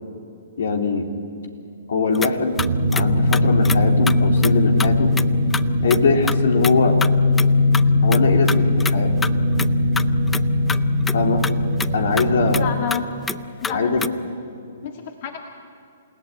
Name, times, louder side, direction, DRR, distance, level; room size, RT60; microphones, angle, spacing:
voice 1, 0.6-1.1 1.9-2.7 2.9-5.1 5.8-7.0 8.0-9.2 11.1-11.4 11.9-12.7 13.7-14.1, left 3 dB, 75° left, 4 dB, 3.4 m, -21 dB
sound 1, 2.1-2.3 2.6-3.1 3.3-3.8 4.1-4.2 4.4-4.5 4.8-4.9 5.2-5.6 5.9-6.0 6.3-6.4 6.6-6.7 7.0-7.1 7.4-7.5 7.7-7.8 8.1-8.9 9.2-9.3 9.6-9.7 10.0-10.8 11.1-11.2 11.4-11.5 11.8-11.9 12.2-12.6 12.9-13.0 13.3-14.1, left 5 dB, 10° left, 0.5 m, -26 dB
sound 2, 2.6-12.7, left 2 dB, 60° right, 1.4 m, -19 dB
voice 2, 12.5-13.1 13.6-14.1 14.8-15.4, left 7 dB, 45° left, 4 dB, 2.1 m, -29 dB
28.0 x 17.0 x 9.9 m, 2.6 s
hypercardioid pair, 135°, 0 cm